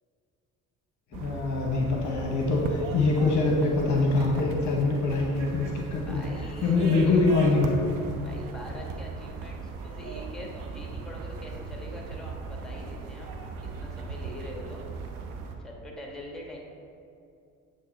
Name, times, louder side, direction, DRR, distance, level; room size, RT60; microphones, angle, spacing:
voice 1, 1.1-6.2 6.6-7.8, left 3 dB, 45° left, 0 dB, 0.8 m, -24 dB
sound 1, 1.1-15.5, right 4 dB, 50° right, 0.7 m, -37 dB
voice 2, 6.0-7.2 8.2-14.8 15.6-16.6, equal, ahead, -1 dB, 1.3 m, -43 dB
7.9 x 3.2 x 4.1 m, 2.5 s
figure-of-eight pair, 55°, 41 cm